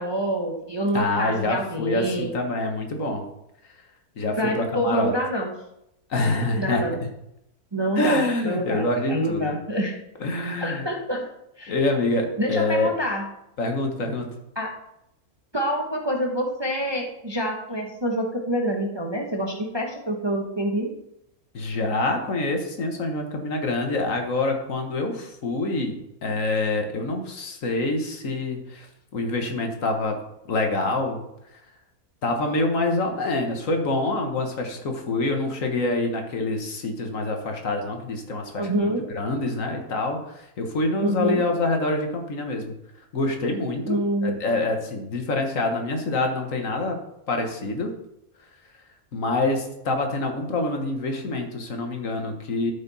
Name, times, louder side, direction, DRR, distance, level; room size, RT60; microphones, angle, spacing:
voice 1, 0.0-2.3 4.4-5.5 6.6-7.0 7.7-9.9 10.6-11.2 11.6-11.7 12.4-13.3 14.6-14.7 15.5-20.9 38.5-39.0 41.0-41.4 43.8-44.4, equal, 20° right, 1 dB, 0.9 m, -26 dB
voice 2, 0.9-3.2 4.2-5.1 6.1-6.8 8.0-9.6 10.2-10.9 11.7-12.9 13.6-14.3 21.5-26.0 26.2-28.9 29.1-30.2 30.5-31.2 31.5-31.6 32.2-42.8 43.1-47.0 47.3-47.9 49.1-52.7, left 2 dB, 60° left, 4 dB, 1.6 m, -26 dB
12.5 x 5.6 x 4.1 m, 0.82 s
omnidirectional pair, 1.6 m